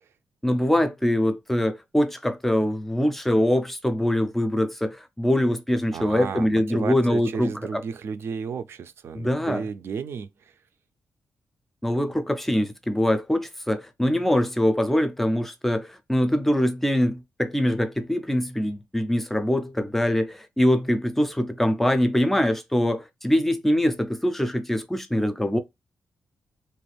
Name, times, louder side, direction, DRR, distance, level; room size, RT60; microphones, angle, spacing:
voice 1, 0.4-7.8 9.1-9.7 11.8-25.6, left 1 dB, 5° left, 0.4 m, -23 dB
voice 2, 5.9-10.3, right 6 dB, 60° right, 0.4 m, -33 dB
3.0 x 2.4 x 3.2 m
wide cardioid pair, 150°, 5 cm